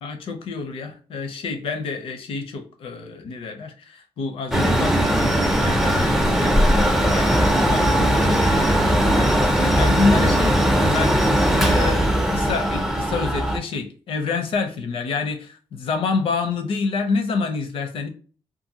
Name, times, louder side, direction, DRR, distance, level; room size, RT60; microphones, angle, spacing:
voice 1, 0.0-18.1, left 4 dB, 70° left, 7 dB, 0.6 m, -28 dB
Mechanical fan, 4.5-13.6, equal, 5° right, 0.4 m, -19 dB
2.6 x 2.5 x 2.7 m, 0.39 s
cardioid pair, 150°, 10 cm